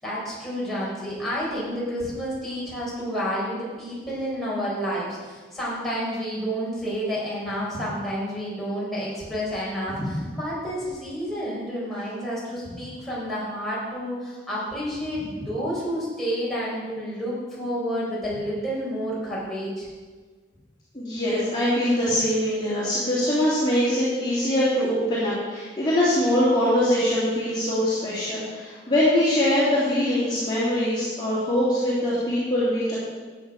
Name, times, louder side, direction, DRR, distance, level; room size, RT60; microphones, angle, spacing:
voice 1, 0.0-10.0 10.3-19.9, equal, ahead, -8 dB, 4.2 m, -30 dB
voice 2, 20.9-33.0, left 1 dB, 25° left, -10 dB, 2.8 m, -23 dB
13.5 x 8.7 x 4.9 m, 1.4 s
head